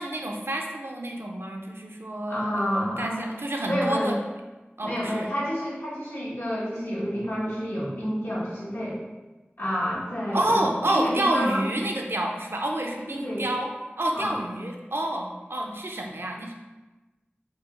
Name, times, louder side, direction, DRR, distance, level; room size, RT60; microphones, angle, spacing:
voice 1, 0.0-4.2 4.8-5.3 10.3-13.7 14.0-16.5, right 1 dB, 65° right, 1 dB, 0.5 m, -28 dB
voice 2, 2.3-3.3 3.6-4.1 4.8-9.0 9.6-11.6 13.0-13.5 14.1-14.4, equal, 70° left, -7 dB, 1.2 m, -29 dB
3.4 x 3.3 x 3.0 m, 1.1 s
wide cardioid pair, 40°, 4 cm